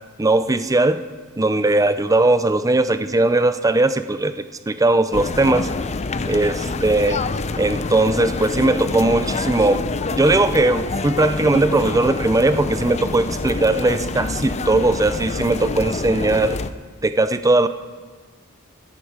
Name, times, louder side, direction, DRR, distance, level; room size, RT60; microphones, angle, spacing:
voice 1, 0.2-1.0 1.4-4.3 4.7-5.7 6.3-7.2 7.6-9.8 10.1-16.6 17.0-17.7, right 2 dB, 15° right, 11 dB, 0.5 m, -19 dB
sound 1, 5.1-16.7, left 3 dB, 30° left, 0.5 m, -26 dB
17.0 x 10.5 x 5.1 m, 1.5 s
head